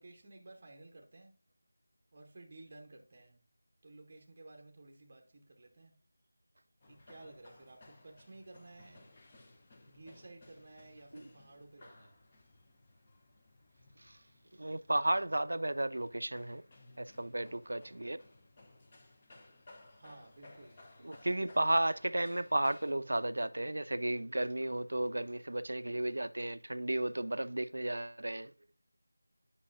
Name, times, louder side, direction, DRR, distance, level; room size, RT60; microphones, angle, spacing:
voice 1, 0.0-1.3 2.1-3.5 3.8-6.0 6.9-9.1 9.9-12.2 19.9-20.9, right 2 dB, 20° right, 0.8 m, -55 dB
sound 1, 6.8-22.9, left 2 dB, 15° left, 0.5 m, -60 dB
voice 2, 14.6-16.6 17.0-18.2 21.0-28.5, right 1 dB, 70° right, 0.5 m, -33 dB
8.4 x 5.5 x 2.5 m
figure-of-eight pair, 180°, 0 cm